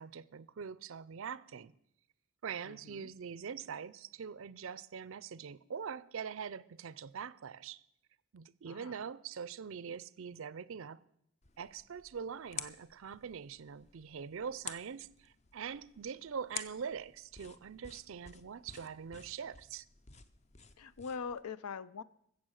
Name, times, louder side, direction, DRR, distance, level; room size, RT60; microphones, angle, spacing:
voice 1, 0.0-1.7 2.4-7.8 8.3-11.0 11.6-19.8, right 6 dB, 65° right, 0.4 m, -43 dB
voice 2, 2.6-3.2 8.7-9.1 20.8-22.0, left 5 dB, 85° left, 0.5 m, -43 dB
sound 1, 11.4-21.4, left 6 dB, 30° left, 0.5 m, -50 dB
15.0 x 7.3 x 6.4 m
head